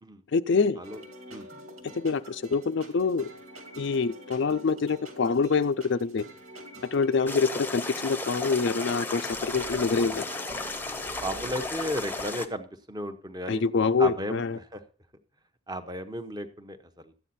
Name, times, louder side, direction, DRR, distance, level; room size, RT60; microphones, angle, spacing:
voice 1, 0.3-0.8 2.0-3.3 3.8-6.2 6.9-10.3 13.5-14.6, left 4 dB, 55° left, 0.4 m, -25 dB
sound 1, 0.8-12.2, equal, 90° right, 2.6 m, -46 dB
sound 2, 7.3-12.5, left 2 dB, 10° left, 0.8 m, -34 dB
voice 2, 10.8-13.6 14.0-14.8 15.7-17.1, equal, 20° right, 0.9 m, -35 dB
13.0 x 9.1 x 4.2 m
head